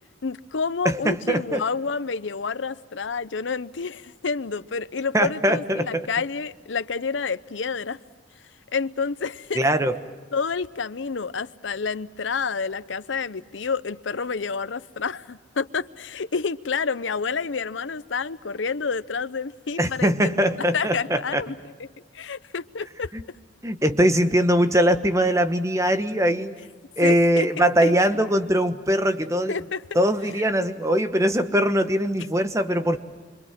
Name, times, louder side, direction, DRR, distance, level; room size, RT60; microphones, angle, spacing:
voice 1, 0.2-8.0 8.7-9.6 10.3-21.9 22.1-23.1 27.0-27.9 29.5-29.8 30.4-30.5, left 5 dB, 80° left, 15 dB, 0.7 m, -29 dB
voice 2, 0.8-1.6 5.1-6.1 9.5-9.9 19.8-21.4 23.1-23.2 23.6-26.5 27.0-29.5 29.9-33.0, equal, 15° right, 9 dB, 1.2 m, -21 dB
26.5 x 25.5 x 7.5 m, 1.5 s
head